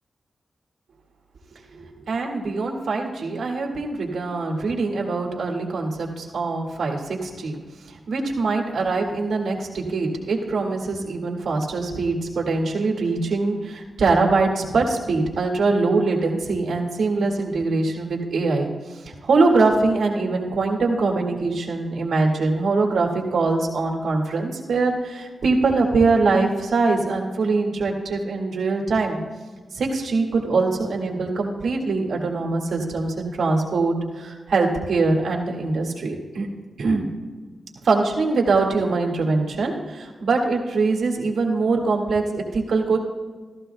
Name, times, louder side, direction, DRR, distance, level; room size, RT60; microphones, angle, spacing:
voice 1, 1.6-7.6 8.1-29.2 29.7-36.5 36.8-37.1 37.8-43.0, right 3 dB, 85° right, 0 dB, 1.9 m, -23 dB
15.0 x 14.0 x 2.3 m, 1.4 s
wide cardioid pair, 155°, 0 cm